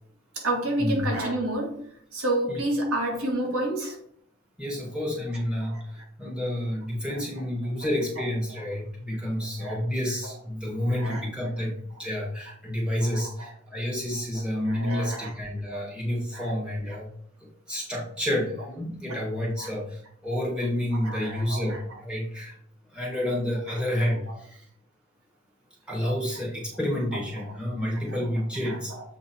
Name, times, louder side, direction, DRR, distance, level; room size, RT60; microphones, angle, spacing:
voice 1, 0.3-1.7 2.1-4.0 5.6-5.8 7.1-7.2 7.8-7.9 8.5-8.6 9.6-9.8 10.9-11.3 13.1-13.5 14.6-15.3 16.3-16.5 16.9-17.0 19.1-19.2 19.6-19.7 20.9-22.0 28.1-28.2 28.6-29.0, right 1 dB, 85° right, 0 dB, 2.0 m, -30 dB
voice 2, 4.6-17.1 17.7-22.6 22.9-24.6 25.9-28.9, left 1 dB, 5° right, -4 dB, 2.1 m, -29 dB
7.8 x 3.8 x 4.4 m, 0.66 s
head